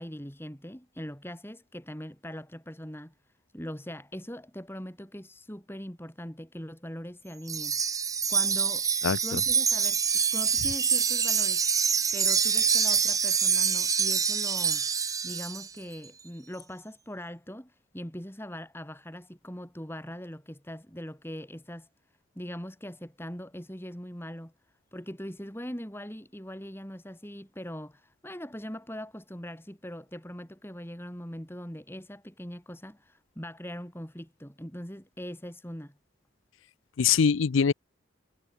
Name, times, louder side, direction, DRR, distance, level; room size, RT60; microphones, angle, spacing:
voice 1, 0.0-3.1 3.5-7.8 8.3-8.9 9.2-11.6 12.1-14.9 15.2-21.9 22.4-24.5 24.9-36.0, equal, 10° left, 3.8 m, -41 dB
Wind chime, 7.5-15.7, right 6 dB, 15° right, 0.7 m, -26 dB
voice 2, 9.0-9.4 37.0-37.7, left 6 dB, 75° left, 0.5 m, -23 dB
head